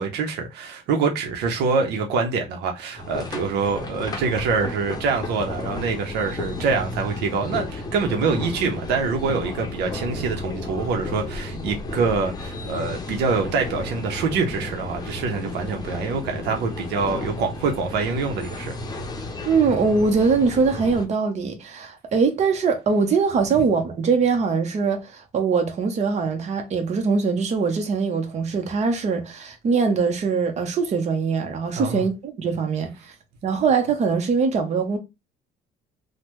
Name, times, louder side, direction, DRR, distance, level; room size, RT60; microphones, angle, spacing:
voice 1, 0.0-18.7 31.8-32.0, right 4 dB, 85° right, 0.7 m, -25 dB
sound 1, 3.0-21.1, left 2 dB, 25° left, 0.7 m, -33 dB
voice 2, 19.5-32.9 33.4-35.0, right 5 dB, 40° right, 0.8 m, -22 dB
3.2 x 2.1 x 3.1 m
cardioid pair, 110°, 17 cm